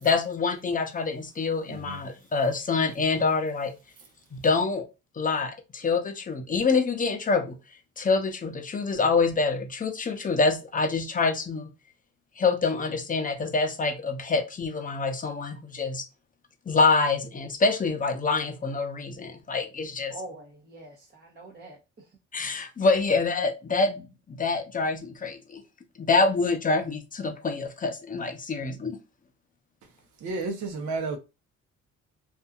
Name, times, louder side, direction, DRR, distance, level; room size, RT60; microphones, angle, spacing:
voice 1, 0.0-3.7 4.3-4.8 5.2-7.6 8.0-11.7 12.4-16.0 16.7-20.1 22.3-25.6 26.0-29.0, left 4 dB, 25° left, 0.6 m, -26 dB
voice 2, 20.1-22.2, right 2 dB, 35° right, 0.9 m, -44 dB
voice 3, 30.2-31.2, right 3 dB, 70° right, 0.8 m, -31 dB
2.6 x 2.5 x 2.4 m
cardioid pair, 90°, 30 cm